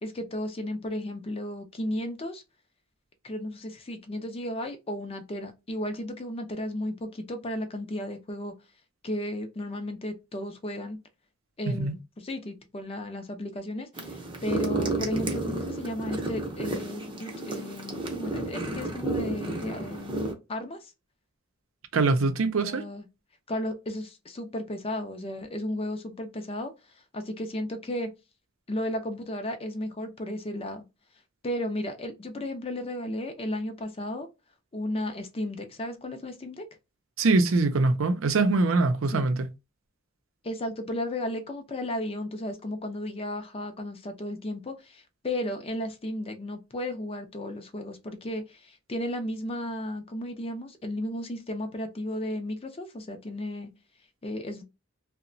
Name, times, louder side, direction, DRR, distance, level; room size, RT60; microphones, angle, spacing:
voice 1, 0.0-2.4 3.2-8.5 9.0-11.0 11.6-20.9 22.6-23.1 23.5-26.7 27.1-28.1 28.7-30.8 31.4-34.3 34.7-36.7 39.1-39.3 40.4-53.7 54.2-54.6, left 1 dB, 30° left, 0.5 m, -34 dB
sound 1, 14.0-20.3, right 2 dB, 25° right, 0.6 m, -32 dB
voice 2, 21.9-22.8 37.2-39.5, right 3 dB, 80° right, 0.5 m, -23 dB
2.8 x 2.1 x 2.5 m
head